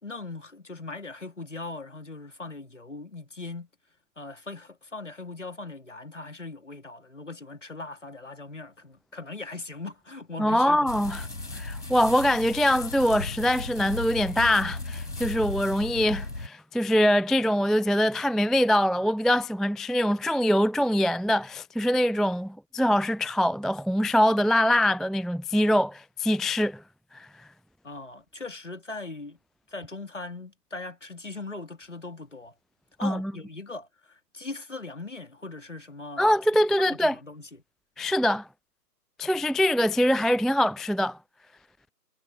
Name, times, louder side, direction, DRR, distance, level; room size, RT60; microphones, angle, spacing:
voice 1, 0.0-3.7 4.2-10.9 27.8-29.4 29.7-32.5 33.0-36.3 36.9-37.5, left 3 dB, 50° left, 2.8 m, -40 dB
voice 2, 10.4-11.2 11.5-26.8 27.1-27.3 33.0-33.3 36.2-37.2 38.0-38.5 39.2-41.2, equal, ahead, 0.3 m, -23 dB
sound 1, 10.9-16.5, left 2 dB, 65° left, 5.1 m, -36 dB
figure-of-eight pair, 175°, 49 cm